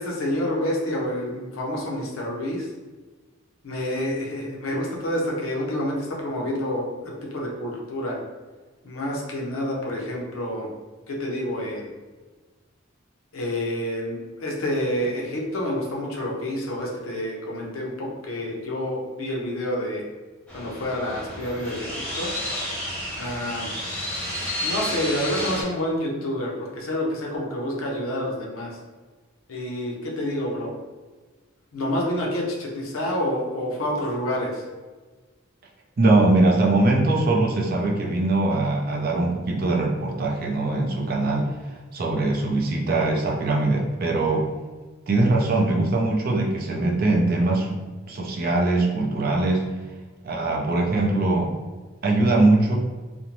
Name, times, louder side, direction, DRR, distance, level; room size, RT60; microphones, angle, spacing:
voice 1, 0.0-2.7 3.6-8.2 8.8-10.7 11.1-11.9 13.3-20.0 20.5-22.3 23.2-23.7 24.6-28.7 29.5-30.7 31.7-34.6, left 1 dB, 75° left, -2 dB, 0.6 m, -28 dB
sound 1, 20.5-25.6, left 1 dB, 5° left, 0.6 m, -31 dB
voice 2, 36.0-41.5 41.9-44.5 45.1-47.7 48.1-49.7 50.2-51.5 52.0-52.8, right 2 dB, 45° right, 0 dB, 0.4 m, -21 dB
2.5 x 2.1 x 2.9 m, 1.3 s
head